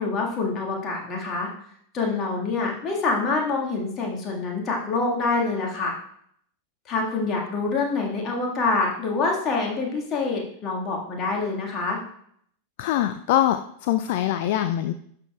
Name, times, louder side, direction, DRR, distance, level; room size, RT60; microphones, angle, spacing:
voice 1, 0.0-1.5 1.9-6.0 6.9-12.0, left 3 dB, 30° left, -1 dB, 1.8 m, -26 dB
voice 2, 12.8-14.9, left 12 dB, 50° left, 10 dB, 0.3 m, -23 dB
11.0 x 6.6 x 2.4 m, 0.67 s
figure-of-eight pair, 90°, 0 cm